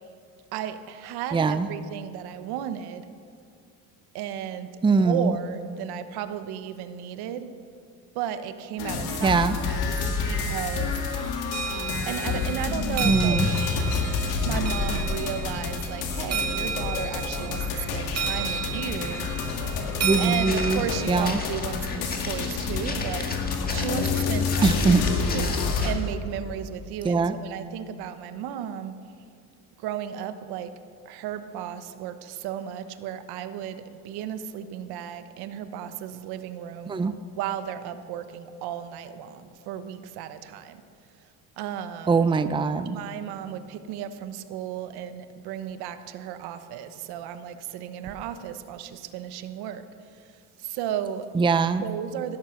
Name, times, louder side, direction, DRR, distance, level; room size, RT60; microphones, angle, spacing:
voice 1, 0.5-3.1 4.1-7.5 8.1-9.3 9.6-9.8 10.3-11.0 12.1-13.4 14.4-19.3 20.2-23.3 23.7-29.0 29.8-30.8 31.0-36.9 37.3-40.8 41.6-42.2 42.8-49.9 50.1-51.3 51.8-52.4, right 10 dB, 80° right, 10 dB, 1.2 m, -34 dB
voice 2, 1.3-1.7 4.8-5.3 9.2-9.6 13.0-13.5 20.0-20.8 21.1-21.4 24.6-25.0 27.0-27.4 36.9-37.1 42.1-43.0 51.3-51.8, right 4 dB, 15° right, 11 dB, 0.5 m, -22 dB
sound 1, 8.8-25.9, left 4 dB, 80° left, 2.2 m, -28 dB
sound 2, 11.5-21.2, right 6 dB, 40° right, 2.3 m, -33 dB
Walk footsteps, 20.4-26.1, left 3 dB, 25° left, 1.8 m, -37 dB
17.5 x 12.5 x 5.9 m, 2.3 s
cardioid pair, 120°, 37 cm